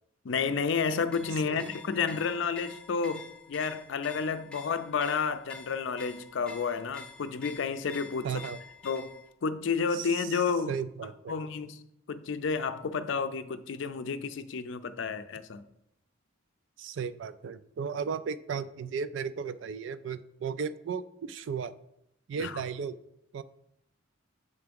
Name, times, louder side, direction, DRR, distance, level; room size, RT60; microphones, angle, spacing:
voice 1, 0.2-8.4 8.8-9.1 9.4-10.7 11.3-11.8 12.1-15.6 22.4-22.6, left 5 dB, 65° left, 0.4 m, -31 dB
sound 1, 1.0-9.3, left 4 dB, 5° left, 0.6 m, -48 dB
voice 2, 1.4-1.8 8.2-8.6 9.9-10.4 10.7-11.3 16.8-21.7 22.3-23.0 23.3-23.4, right 6 dB, 65° right, 0.3 m, -35 dB
6.9 x 3.4 x 5.2 m
head